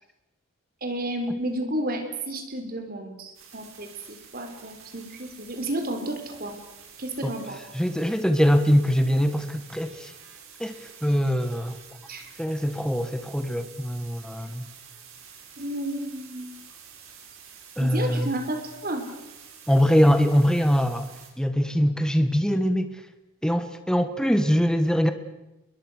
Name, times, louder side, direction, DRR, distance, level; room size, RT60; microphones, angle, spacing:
voice 1, 0.8-6.6 7.0-7.6 12.1-12.3 15.6-16.6 17.8-19.0, right 1 dB, 45° right, 6 dB, 4.0 m, -32 dB
sound 1, 3.3-21.3, right 7 dB, 80° right, 6.4 m, -48 dB
voice 2, 7.7-10.1 10.6-11.8 12.4-14.6 17.8-18.3 19.7-21.1 21.4-23.0 23.4-25.1, equal, 5° left, 8 dB, 1.6 m, -23 dB
29.5 x 22.5 x 6.4 m, 0.96 s
head